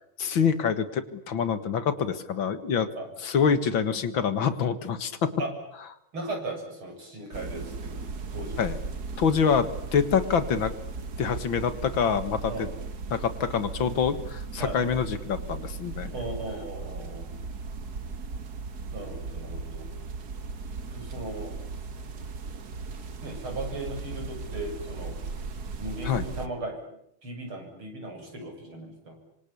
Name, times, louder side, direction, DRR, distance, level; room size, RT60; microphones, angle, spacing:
voice 1, 0.2-2.9 3.2-5.3 8.6-8.8 9.2-10.7 11.2-12.7 13.1-16.2 26.0-26.3, left 6 dB, 65° left, 12 dB, 2.4 m, -26 dB
voice 2, 6.1-7.9 8.3-8.6 12.5-12.7 14.6-14.8 16.1-17.3 18.9-19.9 20.8-21.6 23.2-25.1 25.8-26.8 27.2-29.2, right 2 dB, 75° right, 3 dB, 7.9 m, -37 dB
sound 1, 7.3-26.5, right 4 dB, 50° right, 2.0 m, -37 dB
26.0 x 26.0 x 8.5 m, 0.72 s
omnidirectional pair, 2.4 m